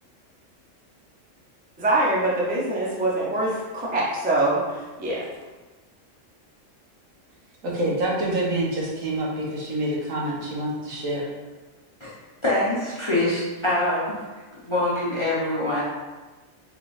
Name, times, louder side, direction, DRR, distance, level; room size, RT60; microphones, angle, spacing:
voice 1, 1.8-4.6 5.0-5.2, right 2 dB, 15° right, -4 dB, 0.3 m, -23 dB
voice 2, 7.6-11.3, right 1 dB, 85° right, -5 dB, 1.4 m, -27 dB
voice 3, 12.4-14.1 14.5-15.8, left 1 dB, 30° left, -8 dB, 0.6 m, -24 dB
3.7 x 3.6 x 2.5 m, 1.2 s
omnidirectional pair, 1.3 m